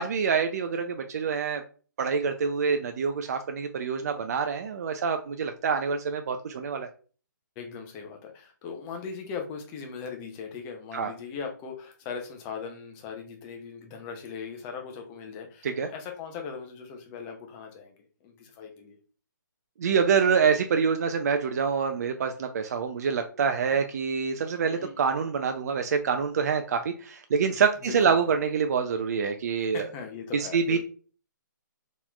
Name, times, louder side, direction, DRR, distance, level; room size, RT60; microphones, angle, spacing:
voice 1, 0.0-1.6 2.0-6.9 10.9-11.1 15.6-15.9 19.8-29.9 30.5-30.8, right 6 dB, 55° right, 6 dB, 0.4 m, -26 dB
voice 2, 7.6-19.0 24.7-25.1 27.4-27.6 27.8-28.3 29.7-30.8, left 6 dB, 20° left, 3 dB, 0.6 m, -39 dB
4.0 x 3.0 x 2.3 m, 0.39 s
hypercardioid pair, 155°, 11 cm